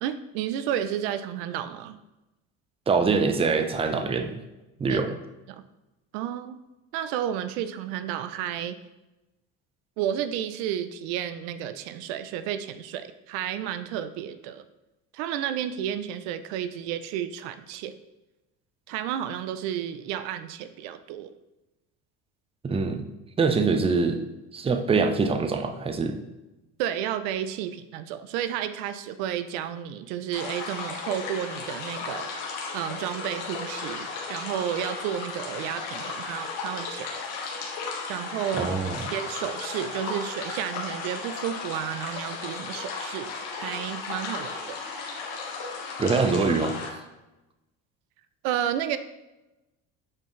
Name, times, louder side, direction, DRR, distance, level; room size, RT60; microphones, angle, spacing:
voice 1, 0.0-2.0 4.9-5.0 5.5-5.6 6.1-6.6 6.9-8.8 10.0-14.6 15.1-17.9 18.9-21.3 26.8-37.2 38.1-38.7 39.1-44.8 48.4-49.0, right 10 dB, 85° right, 11 dB, 0.6 m, -32 dB
voice 2, 2.9-4.4 4.8-5.1 22.6-23.1 23.4-24.2 24.5-26.2 38.6-39.0 46.0-46.7, right 4 dB, 15° right, 6 dB, 0.6 m, -24 dB
sound 1, 30.3-46.9, left 4 dB, 85° left, 1.6 m, -35 dB
8.6 x 4.5 x 3.1 m, 1.0 s
cardioid pair, 115°, 36 cm